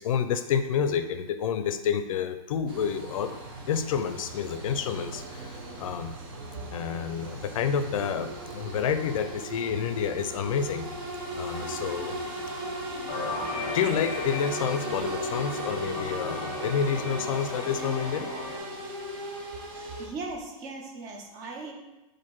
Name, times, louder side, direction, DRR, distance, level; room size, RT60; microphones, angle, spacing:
voice 1, 0.0-3.3 3.7-6.2 6.7-10.9 11.3-12.2 13.7-18.3, left 7 dB, 70° left, 10 dB, 0.4 m, -29 dB
sound 1, 2.7-20.1, right 1 dB, 45° right, 0.8 m, -37 dB
sound 2, 13.1-18.6, left 3 dB, 25° left, 0.7 m, -36 dB
voice 2, 19.7-21.7, right 3 dB, 20° right, 2 dB, 0.4 m, -38 dB
4.3 x 2.6 x 4.4 m, 1.0 s
supercardioid pair, 170°, 18 cm